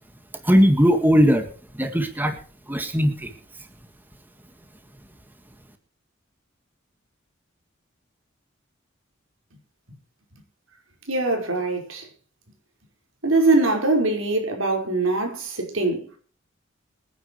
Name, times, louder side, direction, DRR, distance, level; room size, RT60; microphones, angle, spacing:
voice 1, 0.4-1.5 1.7-2.3 2.7-3.3, equal, 10° right, 1.7 m, -18 dB
voice 2, 11.1-12.1 13.2-16.2, right 2 dB, 90° right, 5.2 m, -22 dB
25.5 x 10.0 x 3.2 m
head